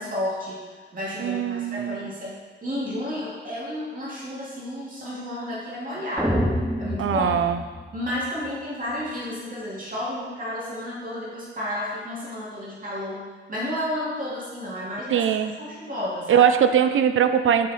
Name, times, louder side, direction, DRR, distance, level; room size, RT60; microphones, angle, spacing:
voice 1, 0.0-2.3 2.6-6.5 6.8-7.3 7.9-15.2 15.6-16.5, left 1 dB, 45° right, -6 dB, 2.1 m, -32 dB
voice 2, 1.2-2.1 7.0-7.6 15.1-15.6 16.3-17.7, right 8 dB, 85° right, 9 dB, 0.5 m, -21 dB
sound 1, 6.2-8.5, equal, 5° right, 0.7 m, -27 dB
6.7 x 6.5 x 4.1 m, 1.5 s
wide cardioid pair, 165°, 20 cm